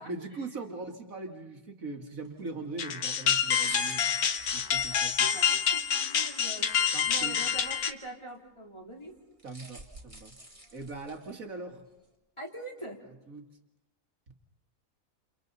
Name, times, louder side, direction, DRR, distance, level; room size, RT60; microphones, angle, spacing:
voice 1, 0.0-4.2 4.5-5.1 6.9-7.4 9.4-10.4 10.7-11.8 13.3-13.5, right 3 dB, 65° right, 4 dB, 2.4 m, -40 dB
sound 1, 2.2-2.5 3.2-5.8 6.5-7.9 8.3-8.4 9.2-11.3 11.8-11.9, right 1 dB, 30° right, 2.8 m, -47 dB
sound 2, 2.8-7.9, left 8 dB, 90° left, 1.6 m, -27 dB
voice 2, 4.9-6.7 7.1-9.1 12.4-13.0, right 1 dB, 20° left, -1 dB, 3.5 m, -43 dB
29.5 x 29.0 x 4.1 m, 0.91 s
omnidirectional pair, 1.5 m